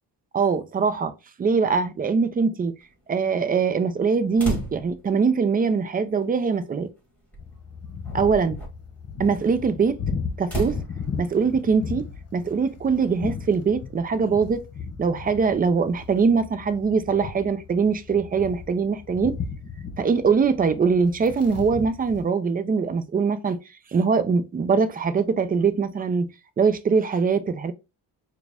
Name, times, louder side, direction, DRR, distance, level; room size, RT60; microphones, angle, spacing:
voice 1, 0.3-1.1 1.4-2.8 3.1-6.9 8.1-8.6 9.2-10.0 10.4-10.8 11.2-12.1 12.3-14.6 15.0-19.4 20.0-23.6 23.9-26.3 26.6-27.7, right 5 dB, 20° right, 0.4 m, -22 dB
sound 1, 4.4-5.1 6.3-6.4 7.3-7.5 8.0-8.7 10.4-10.9, right 2 dB, 5° left, 1.7 m, -31 dB
sound 2, 7.4-22.2, left 5 dB, 35° left, 1.0 m, -36 dB
4.7 x 2.3 x 3.4 m
cardioid pair, 125°, 42 cm